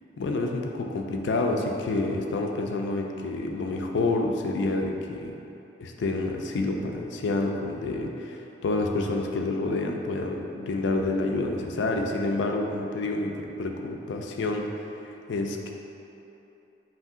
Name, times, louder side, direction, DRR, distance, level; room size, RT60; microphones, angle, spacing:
voice 1, 0.2-5.3 5.8-14.7 15.0-15.7, left 2 dB, 80° left, 2 dB, 0.4 m, -28 dB
5.3 x 2.8 x 2.5 m, 2.9 s
head